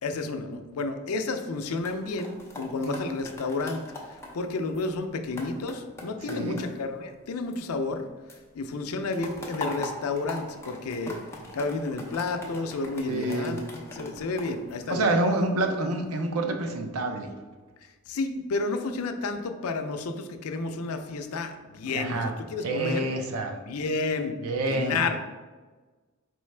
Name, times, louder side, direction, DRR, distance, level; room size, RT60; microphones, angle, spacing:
voice 1, 0.0-3.8 4.1-8.1 8.5-11.2 11.5-15.1 18.1-23.1 23.7-24.4 24.7-25.2, left 3 dB, 80° left, 7 dB, 0.4 m, -31 dB
sound 1, 1.5-8.0 8.3-15.5 16.0-16.3, left 1 dB, 10° left, 0.6 m, -42 dB
voice 2, 2.8-3.1 6.3-6.6 13.1-13.6 14.9-17.3 21.8-22.3 22.6-23.6 24.4-25.0, right 2 dB, 85° right, 4 dB, 0.6 m, -28 dB
4.5 x 3.2 x 3.2 m, 1.3 s
head